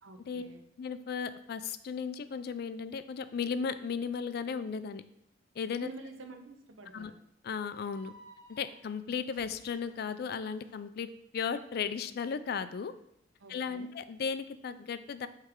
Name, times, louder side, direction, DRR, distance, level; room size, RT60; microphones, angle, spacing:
voice 1, 0.0-0.6 5.8-7.1 13.4-13.9, right 3 dB, 85° right, 5 dB, 0.8 m, -48 dB
voice 2, 0.8-5.0 5.6-5.9 6.9-7.1 7.4-8.1 8.5-11.1 11.3-12.9 13.5-15.3, left 6 dB, 50° left, 12 dB, 0.3 m, -35 dB
sound 1, 7.5-10.7, right 2 dB, 50° right, 2.1 m, -56 dB
8.1 x 3.3 x 3.6 m, 0.76 s
head